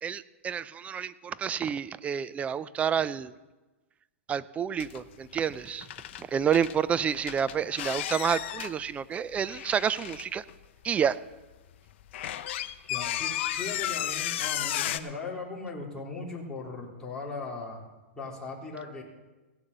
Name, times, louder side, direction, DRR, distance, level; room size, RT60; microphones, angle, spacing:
voice 1, 0.0-3.3 4.3-5.9 6.2-10.4 10.8-11.2, right 8 dB, 20° right, 16 dB, 0.4 m, -29 dB
sound 1, 4.8-5.1 5.4-6.8 7.3-8.7 9.4-10.5 11.1-11.2 11.7-15.0, left 12 dB, 60° left, 0.7 m, -33 dB
voice 2, 12.9-17.8 18.1-19.0, left 3 dB, 10° left, -4 dB, 3.3 m, -38 dB
16.0 x 7.2 x 6.7 m, 1.2 s
hypercardioid pair, 125°, 7 cm